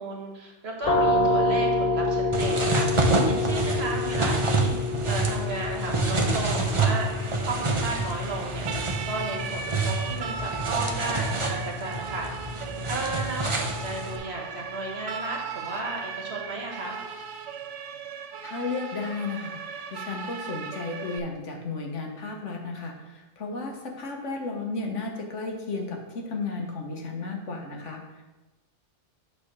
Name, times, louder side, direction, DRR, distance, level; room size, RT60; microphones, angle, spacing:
voice 1, 0.0-7.1 7.4-8.7 9.0-12.3 12.9-17.0, right 2 dB, 60° right, 0 dB, 1.7 m, -34 dB
sound 1, 0.8-12.3, left 2 dB, 55° left, 0.5 m, -29 dB
sound 2, 2.3-14.2, right 3 dB, 30° right, 0.8 m, -28 dB
Siren, 3.5-21.2, right 6 dB, 80° right, 1.0 m, -38 dB
voice 2, 18.4-28.2, left 3 dB, 85° left, 2 dB, 1.5 m, -34 dB
8.4 x 3.5 x 6.1 m, 1.1 s
omnidirectional pair, 1.2 m